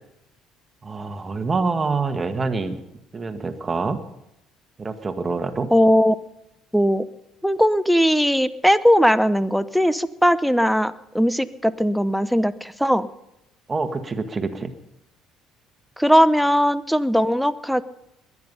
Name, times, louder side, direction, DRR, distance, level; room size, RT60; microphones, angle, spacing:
voice 1, 0.8-2.8 3.1-4.0 4.8-5.7 13.7-14.7, right 4 dB, 30° right, 8 dB, 1.6 m, -26 dB
voice 2, 5.7-6.1 6.7-7.1 7.4-13.1 16.0-17.8, equal, ahead, 15 dB, 0.8 m, -19 dB
21.5 x 9.8 x 5.5 m, 0.83 s
supercardioid pair, 70°, 0 cm